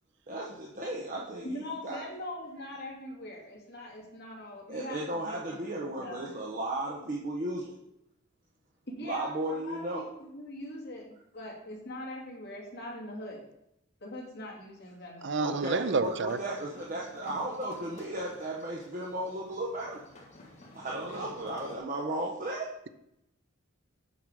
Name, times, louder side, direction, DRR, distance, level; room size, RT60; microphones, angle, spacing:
voice 1, 0.3-2.0 4.7-7.7 9.0-10.0 15.4-20.0 20.7-22.8, right 1 dB, 45° right, -3 dB, 1.1 m, -35 dB
voice 2, 1.4-6.3 8.9-13.4 14.0-15.4, left 1 dB, 55° left, -2 dB, 2.4 m, -42 dB
voice 3, 15.2-16.4, right 4 dB, 65° right, 12 dB, 0.6 m, -29 dB
sound 1, 15.9-21.8, left 1 dB, 35° left, 1.5 m, -53 dB
7.9 x 5.8 x 4.8 m, 0.81 s
head